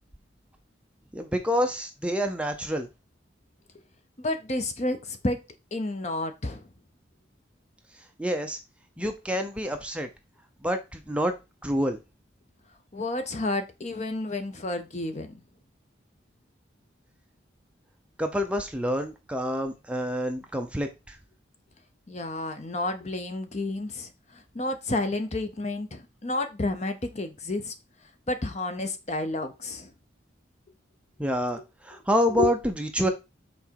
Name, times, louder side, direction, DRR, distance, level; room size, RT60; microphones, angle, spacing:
voice 1, 1.1-2.9 8.2-8.6 9.0-10.1 10.6-11.3 11.6-12.0 18.2-20.9 31.2-31.6 31.9-33.1, equal, 5° right, 0.7 m, -27 dB
voice 2, 4.2-5.4 5.7-6.6 12.9-15.4 22.1-27.7 28.3-29.9 32.3-32.5, left 2 dB, 35° left, 0.8 m, -30 dB
5.9 x 4.0 x 4.5 m
head